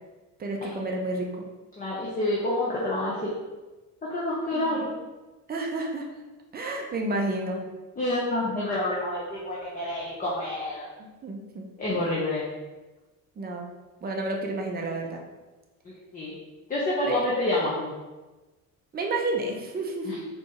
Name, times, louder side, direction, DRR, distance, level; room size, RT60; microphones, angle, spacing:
voice 1, 0.4-1.3 4.5-4.8 5.5-6.1 6.5-7.6 11.0-11.6 11.9-12.1 13.4-13.7 14.0-15.2 17.1-17.2 18.9-20.2, right 2 dB, 20° right, 1 dB, 0.5 m, -31 dB
voice 2, 1.8-3.3 4.1-4.8 8.0-10.9 11.8-12.4 16.1-16.4 16.7-17.9 20.0-20.2, left 1 dB, 20° left, -6 dB, 0.7 m, -28 dB
4.3 x 2.0 x 2.9 m, 1.2 s
figure-of-eight pair, 50°, 46 cm